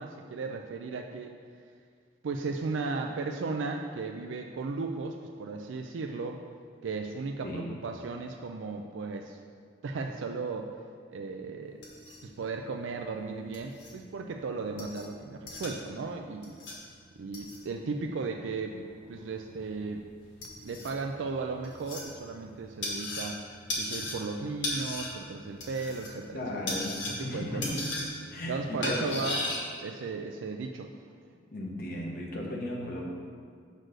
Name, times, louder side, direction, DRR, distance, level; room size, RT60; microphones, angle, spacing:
voice 1, 0.0-1.4 2.2-6.4 6.8-9.4 9.8-10.7 11.1-11.8 12.2-16.6 17.2-20.0 20.6-23.4 23.8-26.4 27.3-27.6 28.5-29.4 29.8-30.9, right 4 dB, 80° right, 3 dB, 0.4 m, -35 dB
voice 2, 7.4-7.7 26.3-27.9 28.3-29.3 31.5-33.0, left 1 dB, 50° left, -2 dB, 1.1 m, -35 dB
sound 1, 11.6-29.6, left 2 dB, 65° left, 1.7 m, -38 dB
6.3 x 4.2 x 6.4 m, 2.1 s
head